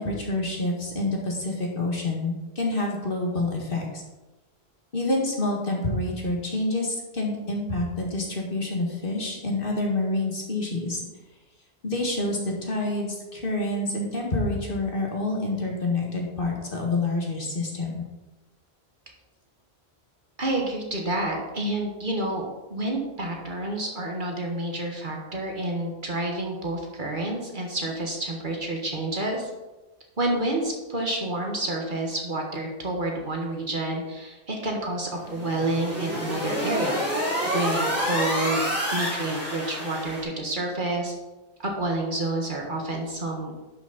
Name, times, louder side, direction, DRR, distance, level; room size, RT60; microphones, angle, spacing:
voice 1, 0.0-4.0 4.9-11.0 11.8-18.0, left 2 dB, 55° left, -1 dB, 2.0 m, -27 dB
voice 2, 20.4-29.5 30.2-38.6 38.9-41.1 41.6-43.5, right 2 dB, 50° right, 0 dB, 1.6 m, -29 dB
sound 1, 35.2-40.2, equal, 15° right, 3.2 m, -28 dB
11.0 x 6.2 x 4.1 m, 1.1 s
omnidirectional pair, 1.1 m